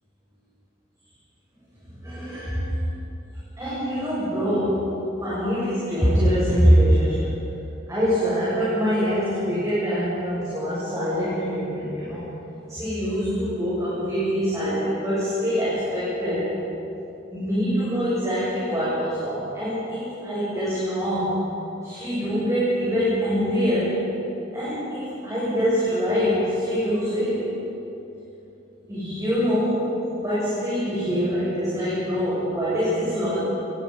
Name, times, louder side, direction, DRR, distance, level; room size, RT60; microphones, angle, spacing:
voice 1, 1.9-2.7 3.6-4.9 5.2-7.3 7.9-12.3 12.7-16.5 17.3-21.4 21.8-24.0 24.5-27.5 28.8-29.9 30.2-33.4, equal, 15° right, -10 dB, 7.2 m, -24 dB
25.0 x 23.0 x 5.6 m, 3.0 s
head